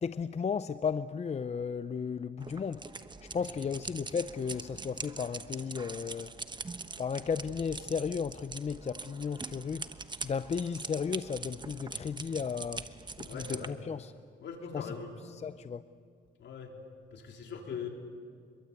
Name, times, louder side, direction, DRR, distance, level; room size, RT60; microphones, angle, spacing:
voice 1, 0.0-2.9 3.2-6.4 7.0-9.9 10.2-12.9 13.2-14.1 14.7-14.9 15.4-15.8, left 6 dB, 35° left, 0.6 m, -34 dB
sound 1, 2.4-13.7, right 3 dB, 20° right, 1.1 m, -43 dB
voice 2, 13.3-13.7 14.4-15.2 16.4-16.7 17.1-17.9, left 6 dB, 65° left, 4.0 m, -41 dB
26.0 x 22.5 x 8.4 m
cardioid pair, 90°, 20 cm